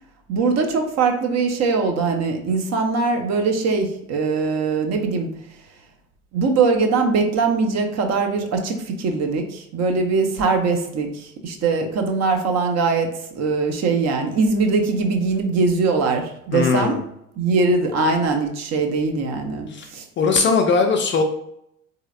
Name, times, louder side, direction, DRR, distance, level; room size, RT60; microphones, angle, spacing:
voice 1, 0.3-5.3 6.3-17.0 17.4-20.1, right 4 dB, 40° right, 4 dB, 0.7 m, -21 dB
voice 2, 16.5-17.0 19.7-19.9 20.2-21.2, left 4 dB, 30° left, 4 dB, 0.4 m, -19 dB
3.9 x 2.8 x 2.5 m, 0.76 s
hypercardioid pair, 65°, 40 cm